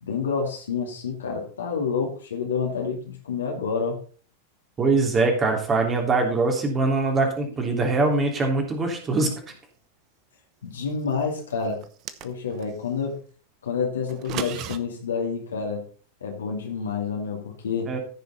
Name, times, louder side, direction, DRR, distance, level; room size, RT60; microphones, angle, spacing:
voice 1, 0.0-4.0 10.6-11.8 12.2-13.2 13.6-15.8 16.2-17.9, left 5 dB, 70° left, 0 dB, 2.4 m, -28 dB
voice 2, 4.8-9.3 17.9-18.0, right 3 dB, 20° right, 3 dB, 3.1 m, -22 dB
sound 1, 11.8-12.7 14.1-14.8, right 11 dB, 40° right, 0.9 m, -34 dB
14.5 x 6.7 x 4.2 m, 0.40 s
figure-of-eight pair, 90°, 0 cm